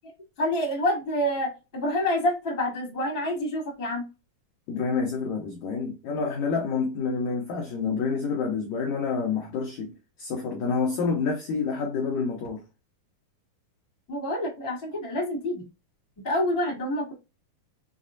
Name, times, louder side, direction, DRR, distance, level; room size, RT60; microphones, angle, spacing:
voice 1, 0.4-4.1 14.1-15.6 16.2-17.1, left 1 dB, 20° left, 0.5 m, -27 dB
voice 2, 4.7-12.6, left 5 dB, 90° left, 1.6 m, -28 dB
6.3 x 2.1 x 2.5 m
omnidirectional pair, 4.3 m